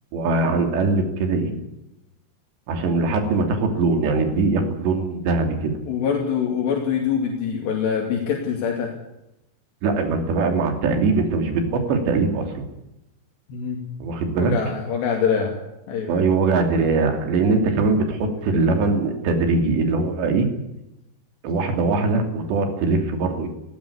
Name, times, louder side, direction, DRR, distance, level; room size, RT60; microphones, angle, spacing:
voice 1, 0.1-1.5 2.7-5.7 9.8-12.7 14.0-14.5 16.1-20.5 21.4-23.5, right 3 dB, 85° right, 5 dB, 5.1 m, -21 dB
voice 2, 5.9-8.9 13.5-13.8 14.4-15.6 15.9-16.3, left 7 dB, 80° left, 0 dB, 4.8 m, -24 dB
18.5 x 16.0 x 9.8 m, 0.88 s
omnidirectional pair, 4.9 m